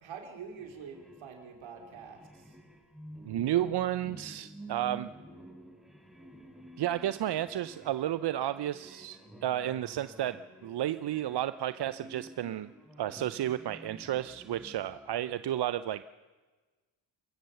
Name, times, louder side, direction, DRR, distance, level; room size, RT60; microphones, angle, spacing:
voice 1, 0.0-2.6, right 6 dB, 75° right, 4 dB, 3.3 m, -46 dB
sound 1, 0.6-15.2, right 1 dB, ahead, 4.7 m, -51 dB
voice 2, 3.2-5.1 6.8-12.7 13.0-16.0, right 12 dB, 60° right, 14 dB, 0.7 m, -32 dB
27.5 x 14.5 x 6.9 m, 1.3 s
supercardioid pair, 50°, 47 cm